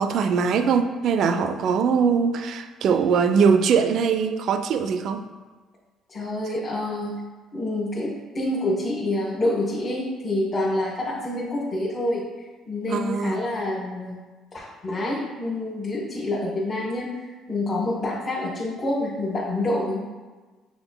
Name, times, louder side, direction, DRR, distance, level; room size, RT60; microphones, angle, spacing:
voice 1, 0.0-5.3 12.9-13.4, right 6 dB, 65° right, 8 dB, 0.3 m, -21 dB
voice 2, 6.1-7.1 7.5-12.2 12.7-14.2 14.5-20.0, left 1 dB, 40° left, -6 dB, 0.9 m, -27 dB
5.9 x 3.8 x 2.2 m, 1.3 s
supercardioid pair, 75°, 0 cm